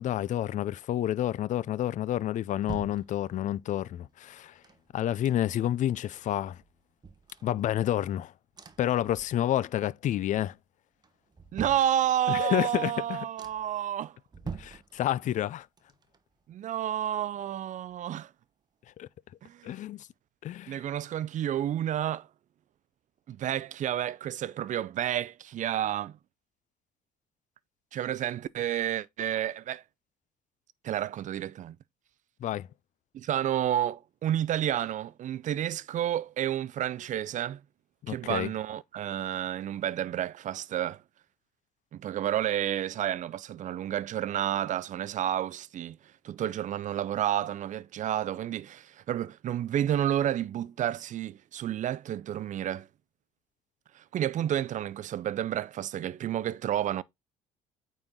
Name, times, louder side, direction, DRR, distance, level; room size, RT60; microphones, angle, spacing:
voice 1, 0.0-4.5 4.9-6.6 7.4-8.3 8.8-10.5 12.3-13.3 14.6-15.7 19.0-19.1 19.6-20.1 20.4-20.8 32.4-32.7 38.0-38.5, left 12 dB, 50° left, 0.4 m, -29 dB
sound 1, 1.9-3.7 4.4-5.8 6.2-6.3 6.5-8.1 8.5-9.7 10.0-10.5 11.0-12.5 12.9-13.0 13.4-13.8 14.3-15.5 15.8-17.6 17.9-18.0, right 5 dB, 25° right, 0.9 m, -46 dB
voice 2, 11.5-14.2 16.5-18.3 19.4-19.7 20.7-22.3 23.3-26.2 27.9-29.8 30.8-31.8 33.1-37.6 38.1-41.0 41.9-46.0 46.2-52.9 53.9-57.0, right 11 dB, 45° right, 0.5 m, -30 dB
8.7 x 4.1 x 3.7 m
cardioid pair, 110°, 17 cm